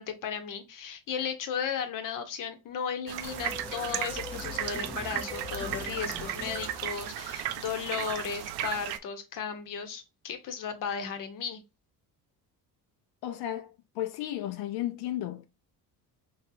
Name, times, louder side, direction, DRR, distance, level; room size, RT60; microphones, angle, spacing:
voice 1, 0.0-11.6, left 7 dB, 55° left, 0.9 m, -35 dB
sound 1, 3.1-9.0, right 12 dB, 80° right, 0.5 m, -35 dB
sound 2, 3.2-7.6, left 2 dB, 5° left, 0.4 m, -42 dB
voice 2, 13.2-15.5, left 13 dB, 80° left, 0.6 m, -34 dB
4.1 x 3.2 x 2.5 m
cardioid pair, 140°, 38 cm